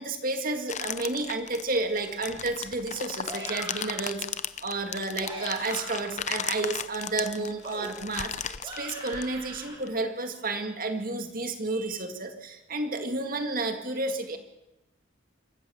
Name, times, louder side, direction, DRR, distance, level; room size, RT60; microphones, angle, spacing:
voice 1, 0.0-14.4, right 2 dB, 45° right, 6 dB, 2.2 m, -31 dB
sound 1, 0.7-9.9, left 8 dB, 35° left, 0.7 m, -36 dB
sound 2, 3.2-4.1 5.0-6.2 7.6-9.8, right 1 dB, 25° right, 5.4 m, -42 dB
26.5 x 14.5 x 7.2 m, 0.92 s
head